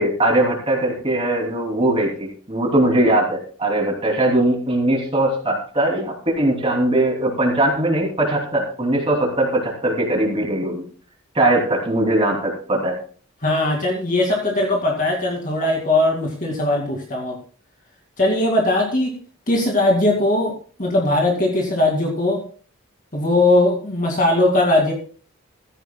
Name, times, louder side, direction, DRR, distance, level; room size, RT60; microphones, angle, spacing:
voice 1, 0.0-10.8 11.3-13.0, right 1 dB, 25° right, -1 dB, 2.9 m, -20 dB
voice 2, 13.4-17.4 18.2-19.2 19.5-22.4 23.1-24.9, left 2 dB, 40° left, 0 dB, 2.3 m, -19 dB
15.5 x 15.0 x 2.3 m, 0.40 s
head